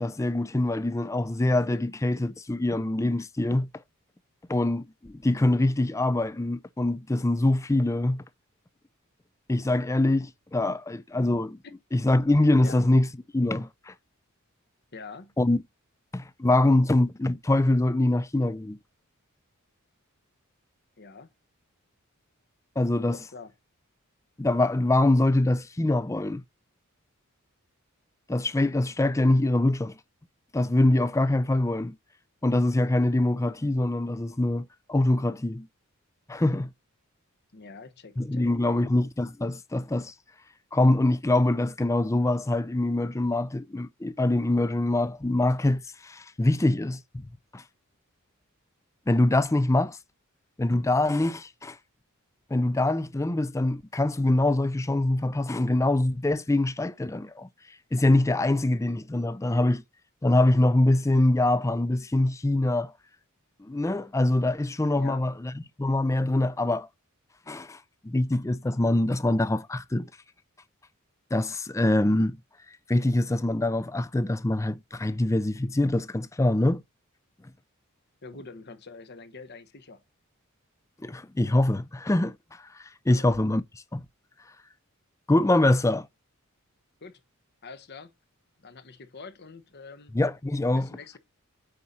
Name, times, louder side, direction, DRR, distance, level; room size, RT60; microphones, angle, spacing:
voice 1, 0.0-3.7 4.5-8.2 9.5-11.6 11.9-13.1 13.3-13.9 15.4-15.6 16.1-18.8 22.8-23.2 24.4-26.4 28.3-30.0 30.5-32.0 32.4-35.7 36.3-36.7 38.2-40.1 40.7-47.3 47.5-47.6 49.1-50.0 50.6-51.8 52.5-57.5 57.9-59.8 60.2-62.9 63.6-65.5 65.8-66.9 67.5-70.1 71.3-72.4 72.9-76.8 81.0-82.6 83.1-83.6 83.9-84.0 85.3-86.1 90.1-90.9, left 2 dB, 15° left, 0.4 m, -24 dB
voice 2, 14.9-15.3 21.0-21.3 23.1-23.5 37.5-38.8 64.9-65.2 78.2-80.0 83.1-83.4 87.0-87.2 87.6-88.1 88.6-90.1 90.7-91.2, left 4 dB, 50° left, 1.1 m, -45 dB
8.7 x 4.2 x 4.1 m
head